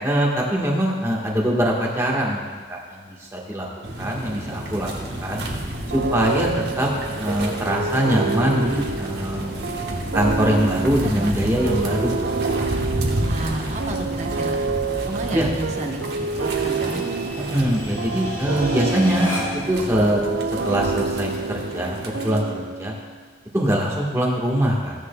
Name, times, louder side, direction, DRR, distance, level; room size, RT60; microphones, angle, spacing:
voice 1, 0.0-2.4 2.7-3.7 4.0-4.9 5.2-5.5 5.9-6.9 7.2-9.5 10.1-12.7 15.3-15.5 17.5-20.2 20.6-22.0 22.2-22.9 23.5-24.9, equal, 15° right, -3 dB, 1.4 m, -23 dB
sound 1, 3.8-22.4, right 1 dB, 60° right, 1.3 m, -31 dB
sound 2, 5.9-23.1, right 4 dB, 85° right, 0.6 m, -28 dB
voice 2, 11.0-11.6 13.2-14.6 15.0-17.1, right 2 dB, 40° right, 2 dB, 1.0 m, -31 dB
sound 3, 12.0-19.8, equal, 15° left, 2.9 m, -38 dB
15.5 x 10.0 x 2.3 m, 1.5 s
head